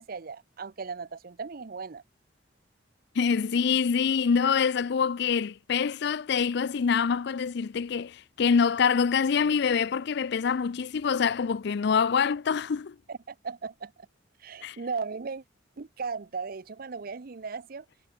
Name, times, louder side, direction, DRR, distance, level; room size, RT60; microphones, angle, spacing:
voice 1, 0.0-2.0 13.1-13.9 14.4-15.4 15.8-17.9, right 5 dB, 50° right, 0.6 m, -37 dB
voice 2, 3.2-13.0 14.6-14.8, left 6 dB, 60° left, 0.4 m, -25 dB
head